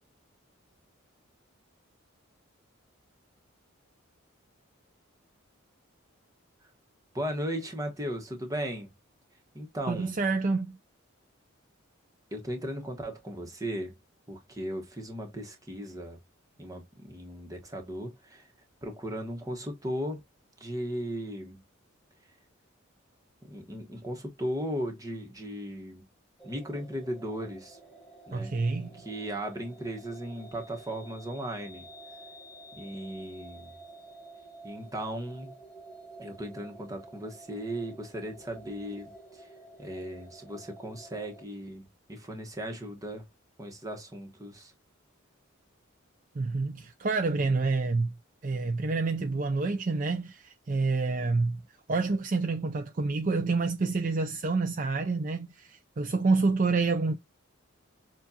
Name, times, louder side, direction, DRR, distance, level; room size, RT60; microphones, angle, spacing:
voice 1, 7.1-8.9 9.5-10.1 12.3-14.0 14.3-16.2 16.6-18.5 18.8-20.2 20.6-21.6 23.4-26.0 26.4-27.8 28.3-28.5 28.9-31.9 32.7-33.7 34.6-35.6 36.2-39.5 39.8-43.3 43.6-44.7, equal, 15° right, 1.1 m, -37 dB
voice 2, 9.9-10.8 28.3-29.0 46.4-48.1 48.4-51.6 51.9-57.2, right 3 dB, 40° right, 0.4 m, -28 dB
sound 1, 26.4-41.4, right 2 dB, 5° left, 1.6 m, -50 dB
7.0 x 2.5 x 2.7 m
head